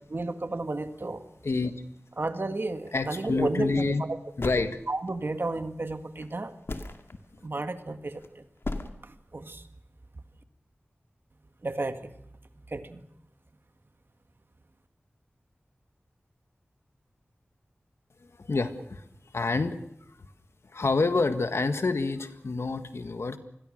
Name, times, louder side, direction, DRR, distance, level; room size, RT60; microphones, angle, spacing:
voice 1, 0.1-1.2 2.2-4.2 4.9-6.5 7.4-8.4 9.0-9.7 11.6-12.1 12.6-13.0, right 2 dB, 55° right, 9 dB, 1.9 m, -32 dB
voice 2, 2.9-4.0 4.4-4.8 18.4-19.0 19.3-19.8 20.7-23.4, left 3 dB, 85° left, 9 dB, 1.7 m, -27 dB
sound 1, 3.6-3.9 4.4-5.3 6.2-6.3 6.7-7.1 7.9-8.3 8.6-8.9, left 2 dB, 65° left, 2.3 m, -35 dB
27.0 x 21.5 x 6.5 m, 0.77 s
wide cardioid pair, 70°, 4 cm